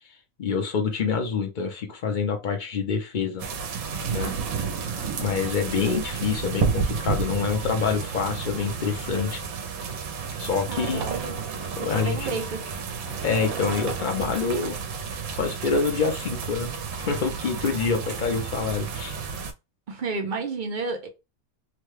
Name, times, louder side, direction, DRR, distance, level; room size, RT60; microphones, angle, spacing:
voice 1, 0.4-3.4 4.1-4.3 5.2-9.4 10.4-11.1 11.8-12.4 13.2-14.8 15.3-19.2, left 5 dB, 45° left, 0.7 m, -26 dB
sound 1, 3.4-19.5, right 5 dB, 85° right, 1.1 m, -31 dB
voice 2, 10.7-11.4 11.8-12.6 19.9-21.1, right 4 dB, 55° right, 0.5 m, -31 dB
3.0 x 2.2 x 3.1 m
omnidirectional pair, 1.5 m